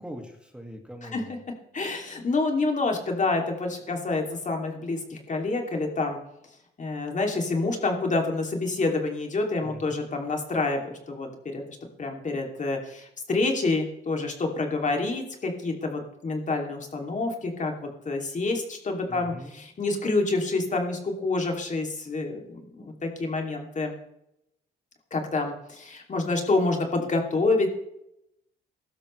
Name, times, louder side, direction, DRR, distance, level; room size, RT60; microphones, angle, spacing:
voice 1, 0.0-1.4 9.6-10.1 19.1-19.6, equal, 5° right, 2 dB, 2.1 m, -42 dB
voice 2, 1.7-6.2 6.8-11.6 12.0-24.0 25.1-27.7, left 3 dB, 40° left, 2 dB, 2.8 m, -28 dB
16.0 x 12.5 x 3.3 m, 0.81 s
cardioid pair, 90°, 20 cm